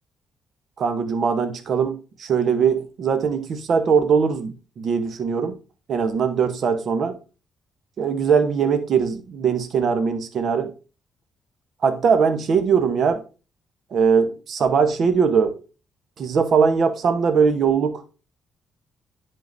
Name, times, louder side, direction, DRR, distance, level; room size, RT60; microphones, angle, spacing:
voice 1, 0.8-5.5 5.9-7.1 8.0-10.7 11.8-13.2 13.9-15.6 16.2-18.0, right 6 dB, 60° right, 0.9 m, -21 dB
10.5 x 3.8 x 2.6 m
cardioid pair, 90°, 0 cm